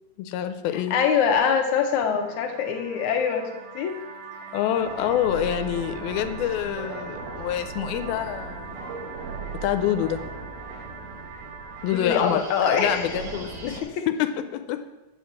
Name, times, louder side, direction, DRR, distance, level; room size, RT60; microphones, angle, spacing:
voice 1, 0.2-1.0 2.1-2.3 4.5-8.8 9.6-10.2 11.8-14.8, left 11 dB, 90° left, 8 dB, 2.5 m, -27 dB
voice 2, 0.7-3.5 3.8-4.0 11.9-13.2 13.7-14.0, left 7 dB, 70° left, 4 dB, 2.0 m, -24 dB
sound 1, 1.8-13.8, right 4 dB, 85° right, 3.4 m, -37 dB
8.3 x 7.4 x 6.0 m, 1.1 s
omnidirectional pair, 4.2 m